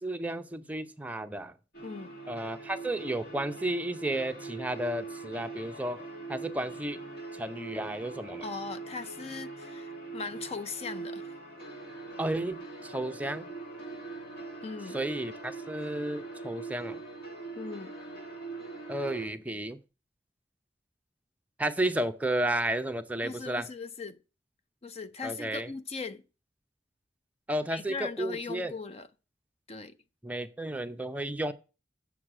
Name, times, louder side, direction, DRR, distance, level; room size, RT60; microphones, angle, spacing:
voice 1, 0.0-1.5 2.3-6.0 6.3-7.0 7.4-8.5 12.2-13.5 14.9-17.0 18.9-19.8 21.6-23.7 25.2-25.7 27.5-28.7 30.2-31.5, right 1 dB, 10° right, 0.7 m, -32 dB
sound 1, 1.7-19.3, right 3 dB, 60° left, 4.1 m, -42 dB
voice 2, 1.8-2.1 8.4-11.3 14.6-15.0 17.6-17.9 23.2-24.2 24.8-26.2 27.7-29.1 29.7-29.9, left 4 dB, 35° left, 0.5 m, -39 dB
7.9 x 6.5 x 7.4 m
head